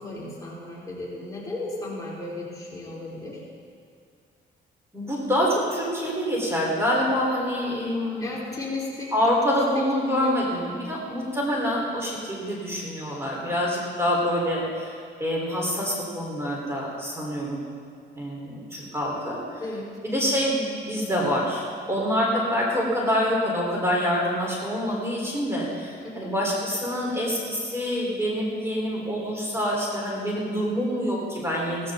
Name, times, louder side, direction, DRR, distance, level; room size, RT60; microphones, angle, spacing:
voice 1, 0.0-3.4 8.2-9.1 10.0-10.4 19.6-19.9 26.0-26.3, left 2 dB, 20° left, -6 dB, 4.6 m, -35 dB
voice 2, 4.9-8.3 9.1-14.9 15.2-17.6 18.1-19.6 20.0-31.9, equal, 15° right, -4 dB, 4.5 m, -26 dB
17.0 x 16.0 x 4.0 m, 2.2 s
cardioid pair, 90°, 20 cm